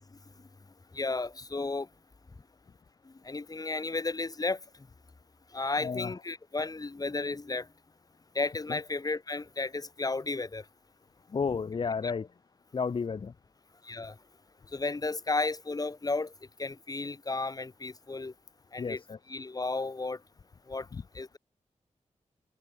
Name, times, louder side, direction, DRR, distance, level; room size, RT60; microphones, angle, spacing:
voice 1, 0.9-1.9 3.0-4.6 5.5-7.7 8.3-10.7 12.0-12.1 13.8-14.2 14.7-16.3 16.6-18.3 18.7-19.0 19.3-20.2 20.7-20.9 21.1-21.4, left 3 dB, 30° left, 5.5 m, -33 dB
voice 2, 5.8-6.2 8.7-8.8 11.3-12.3 12.7-13.3 18.8-19.2 20.9-21.0, left 5 dB, 45° left, 0.8 m, -32 dB
wide cardioid pair, 155°, 12 cm